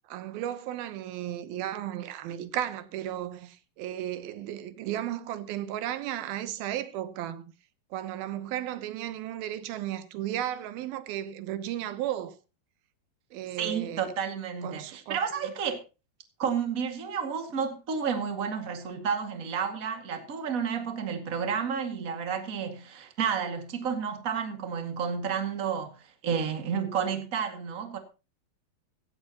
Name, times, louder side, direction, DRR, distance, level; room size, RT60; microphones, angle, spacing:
voice 1, 0.1-7.5 7.9-12.4 13.3-14.1 14.6-15.5, right 12 dB, 85° right, 2.9 m, -34 dB
voice 2, 13.6-15.8 16.4-25.9 26.2-28.0, right 7 dB, 30° right, 1.9 m, -31 dB
16.5 x 16.0 x 3.0 m
omnidirectional pair, 4.2 m